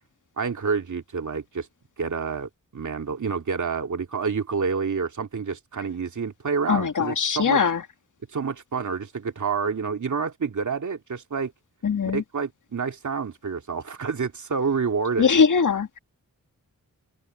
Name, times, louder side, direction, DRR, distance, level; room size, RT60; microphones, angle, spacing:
voice 1, 0.4-1.7 2.0-7.6 8.3-11.5 12.1-15.4, right 5 dB, 55° right, 2.6 m, -28 dB
voice 2, 6.7-7.8 11.8-12.2 15.2-16.0, left 6 dB, 60° left, 2.2 m, -21 dB
cardioid pair, 50°, 35 cm